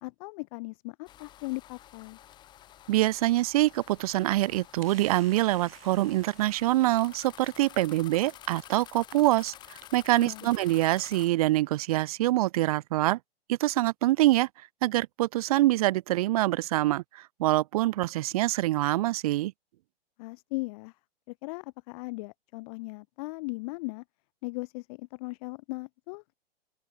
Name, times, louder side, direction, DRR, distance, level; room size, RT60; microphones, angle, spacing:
voice 1, 0.0-2.2 10.2-10.5 20.2-20.9 21.3-24.0 24.4-26.3, left 26 dB, 35° left, 1.6 m, -38 dB
sound 1, 1.1-11.3, left 12 dB, 15° left, 0.6 m, -50 dB
voice 2, 2.9-9.5 9.9-13.2 13.5-14.5 14.8-19.5, right 16 dB, 40° right, 0.5 m, -25 dB
sound 2, 3.0-9.9, right 7 dB, 70° right, 7.2 m, -56 dB
open air
figure-of-eight pair, 120°, 30 cm